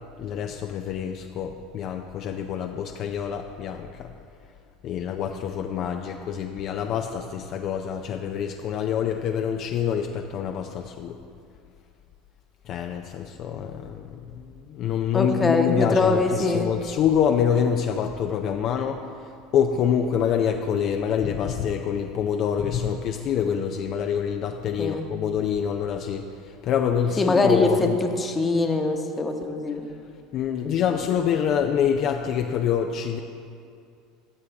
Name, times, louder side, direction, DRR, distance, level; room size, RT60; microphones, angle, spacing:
voice 1, 0.2-4.1 4.8-11.2 12.7-28.0 30.3-33.2, left 8 dB, 50° left, 4 dB, 0.4 m, -26 dB
voice 2, 15.1-16.7 24.8-25.0 27.2-27.7 28.2-29.8, left 3 dB, 20° left, 4 dB, 1.0 m, -22 dB
14.0 x 6.8 x 3.4 m, 2.4 s
hypercardioid pair, 80°, 0 cm